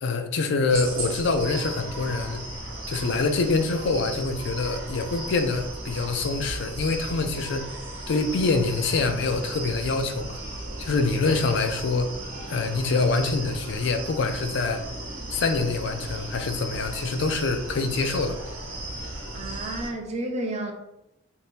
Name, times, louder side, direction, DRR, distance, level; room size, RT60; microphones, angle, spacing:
voice 1, 0.0-2.4 2.9-7.8 8.1-10.4 10.8-12.1 12.5-14.8 15.3-18.4, left 3 dB, 55° left, 7 dB, 0.3 m, -25 dB
sound 1, 0.7-19.9, right 1 dB, 75° right, 0.9 m, -36 dB
voice 2, 19.3-20.7, right 1 dB, 30° right, 3 dB, 0.4 m, -31 dB
2.6 x 2.5 x 3.5 m, 0.86 s
head